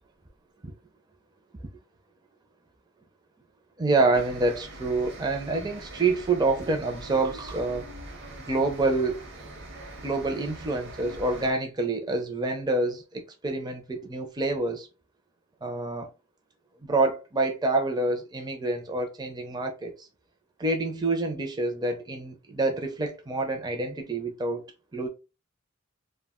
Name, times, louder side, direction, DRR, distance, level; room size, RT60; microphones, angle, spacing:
voice 1, 3.8-7.9 8.5-9.2 10.0-14.9 15.6-16.1 16.9-20.0 20.6-24.6 24.9-25.1, right 3 dB, 20° right, 0.5 m, -27 dB
sound 1, 4.1-11.5, right 1 dB, 60° right, 0.8 m, -43 dB
2.3 x 2.1 x 3.5 m
head